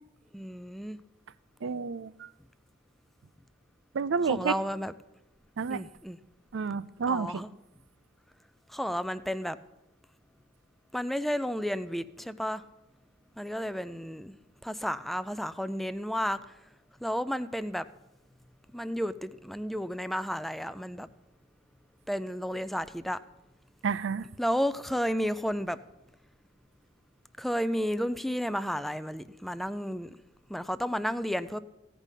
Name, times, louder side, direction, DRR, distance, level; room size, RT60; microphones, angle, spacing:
voice 1, 0.3-1.0 4.3-4.9 5.7-6.2 7.1-7.5 8.7-9.6 10.9-12.6 13.4-14.3 14.6-16.4 17.0-17.9 18.7-21.1 22.1-23.2 24.4-25.8 27.4-30.2 30.5-31.6, equal, ahead, 0.4 m, -32 dB
voice 2, 1.6-2.3 3.9-4.6 5.6-5.8 6.5-7.4 23.8-24.3, right 5 dB, 70° right, 0.4 m, -30 dB
16.0 x 5.3 x 8.2 m
head